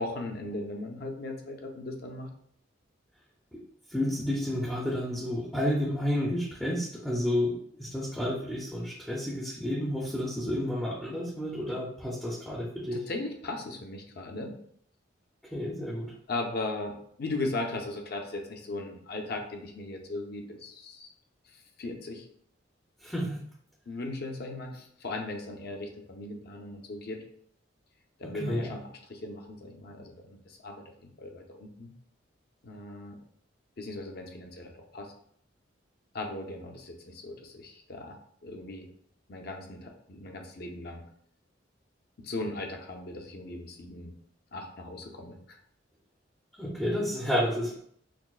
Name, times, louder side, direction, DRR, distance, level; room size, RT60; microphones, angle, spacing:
voice 1, 0.0-2.3 12.9-14.6 16.3-21.1 21.8-22.3 23.9-27.2 28.2-31.9 32.6-33.2 33.8-35.1 36.1-38.9 39.3-41.0 42.2-44.2 44.5-45.6, left 2 dB, 55° left, 3 dB, 0.6 m, -38 dB
voice 2, 3.9-13.0 15.4-16.1 23.0-23.4 28.4-28.8 46.6-47.8, left 1 dB, ahead, -4 dB, 0.5 m, -31 dB
5.9 x 2.0 x 2.4 m, 0.64 s
head